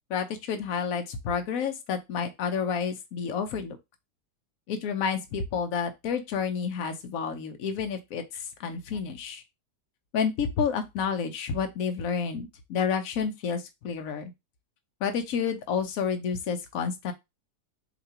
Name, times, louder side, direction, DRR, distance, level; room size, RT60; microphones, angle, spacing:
voice 1, 0.1-3.8 4.7-9.4 10.1-14.3 15.0-17.1, left 6 dB, 60° left, 6 dB, 1.1 m, -30 dB
6.6 x 2.3 x 2.9 m, 0.21 s
omnidirectional pair, 1.8 m